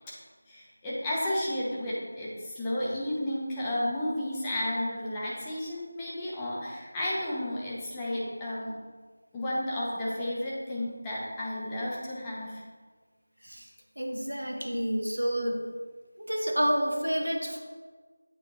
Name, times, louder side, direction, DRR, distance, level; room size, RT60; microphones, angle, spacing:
voice 1, 0.5-8.7 9.3-12.6, left 1 dB, 10° left, -7 dB, 0.9 m, -32 dB
voice 2, 14.0-15.6 16.2-17.6, equal, 85° right, 2 dB, 1.1 m, -29 dB
8.5 x 4.9 x 2.9 m, 1.4 s
figure-of-eight pair, 170°, 0 cm